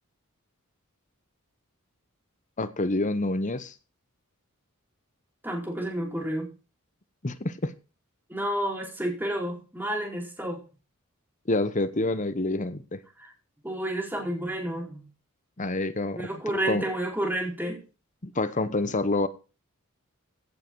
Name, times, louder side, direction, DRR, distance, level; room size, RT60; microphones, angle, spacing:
voice 1, 2.6-3.7 7.2-7.8 11.5-13.0 15.6-16.3 16.7-16.8 18.2-19.3, left 2 dB, 35° left, 1.0 m, -27 dB
voice 2, 5.4-6.5 8.3-10.6 13.2-13.3 13.6-15.1 16.1-17.8, right 1 dB, 10° right, 4.6 m, -30 dB
16.5 x 7.7 x 4.7 m
head